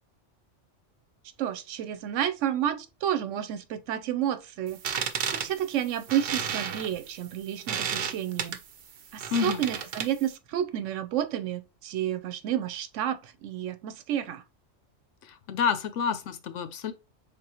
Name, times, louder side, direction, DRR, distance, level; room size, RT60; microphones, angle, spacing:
voice 1, 1.4-4.8 5.3-8.6 9.1-14.4, right 10 dB, 85° right, 1.0 m, -30 dB
sound 1, 4.7-10.3, right 7 dB, 60° right, 0.7 m, -33 dB
voice 2, 9.3-9.6 15.2-16.9, left 6 dB, 80° left, 1.0 m, -29 dB
5.1 x 3.6 x 2.9 m
omnidirectional pair, 1.2 m